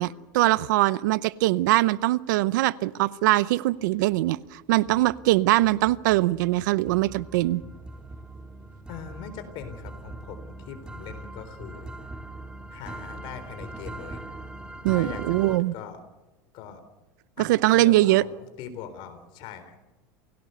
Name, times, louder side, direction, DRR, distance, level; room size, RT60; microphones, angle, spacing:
voice 1, 0.0-7.6 14.8-15.7 17.4-18.2, right 17 dB, 75° right, 19 dB, 0.7 m, -22 dB
sound 1, 4.1-4.4 4.9-15.6, right 2 dB, 10° right, 1.9 m, -41 dB
voice 2, 8.9-12.1 12.7-14.2 14.9-16.0 16.5-16.8 17.4-19.8, left 7 dB, 55° left, 10 dB, 4.0 m, -41 dB
29.0 x 17.5 x 6.8 m, 1.1 s
supercardioid pair, 130°, 10 cm